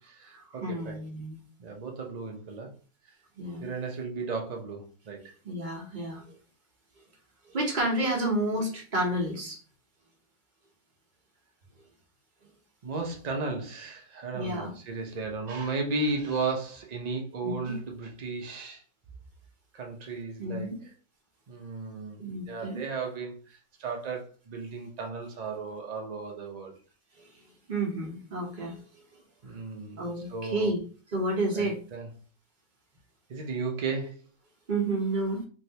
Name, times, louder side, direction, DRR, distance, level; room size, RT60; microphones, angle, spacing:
voice 1, 0.0-1.0 1.6-2.7 3.6-5.2 12.8-18.8 19.7-20.9 21.5-26.7 29.4-30.8 31.5-32.1 33.3-34.2, right 3 dB, 60° right, 0.4 m, -35 dB
voice 2, 0.6-1.4 3.4-3.7 5.4-6.2 7.5-9.6 14.3-14.7 17.4-17.7 20.4-20.8 22.2-22.8 27.7-28.8 30.0-30.8 31.1-31.8 34.7-35.4, right 1 dB, 35° right, 0.9 m, -30 dB
3.2 x 2.7 x 2.8 m
omnidirectional pair, 1.6 m